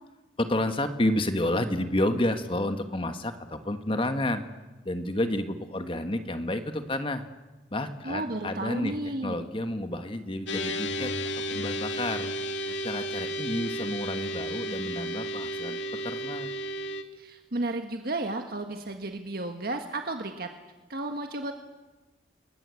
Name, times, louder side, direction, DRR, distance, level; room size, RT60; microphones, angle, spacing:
voice 1, 0.4-4.4 4.8-7.2 7.7-12.3 12.8-15.8 16.0-16.5, left 1 dB, 30° left, 8 dB, 1.5 m, -30 dB
voice 2, 8.0-9.4 17.1-20.5 20.9-21.5, right 2 dB, 55° right, 4 dB, 1.7 m, -33 dB
sound 1, 10.5-17.0, equal, 90° left, 2.1 m, -33 dB
29.0 x 21.0 x 8.4 m, 1.2 s
head